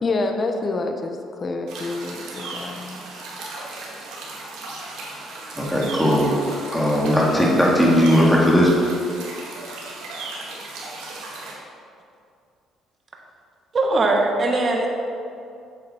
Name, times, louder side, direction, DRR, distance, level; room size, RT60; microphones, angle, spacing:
voice 1, 0.0-3.0, left 3 dB, 35° left, 4 dB, 0.8 m, -27 dB
sound 1, 1.7-11.6, right 2 dB, 85° right, 2.0 m, -36 dB
voice 2, 5.6-6.4 6.7-8.7, equal, 5° left, -4 dB, 1.9 m, -17 dB
voice 3, 13.7-14.9, right 2 dB, 35° right, 1 dB, 1.3 m, -20 dB
8.4 x 7.5 x 4.3 m, 2.4 s
cardioid pair, 95°, 0 cm